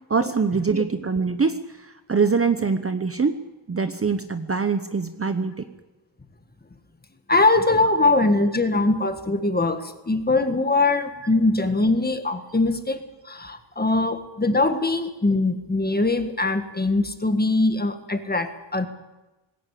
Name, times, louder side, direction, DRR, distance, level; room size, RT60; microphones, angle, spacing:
voice 1, 0.1-1.6 2.1-3.4 3.7-5.5, right 5 dB, 30° right, 9 dB, 0.9 m, -23 dB
voice 2, 7.3-18.9, left 2 dB, 20° left, 8 dB, 1.6 m, -22 dB
20.0 x 17.0 x 8.5 m, 1.1 s
wide cardioid pair, 155°, 49 cm